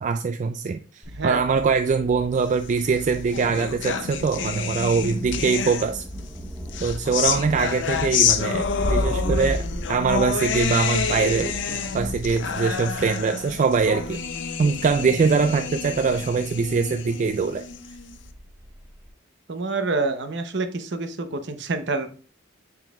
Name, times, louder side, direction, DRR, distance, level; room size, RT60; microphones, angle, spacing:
voice 1, 0.0-6.0 6.8-11.5 11.9-14.2 14.6-17.7, right 5 dB, 40° right, 8 dB, 0.3 m, -23 dB
Thunder, 1.0-19.1, equal, 5° right, 1.5 m, -35 dB
sound 1, 2.8-6.2 6.7-18.2, left 7 dB, 70° left, 0.6 m, -28 dB
sound 2, 11.7-12.2 14.2-14.3 14.7-16.4 17.2-17.5, left 1 dB, 35° left, 2.9 m, -48 dB
voice 2, 19.5-22.2, right 3 dB, 65° right, 8 dB, 0.8 m, -27 dB
6.8 x 5.8 x 2.4 m, 0.40 s
head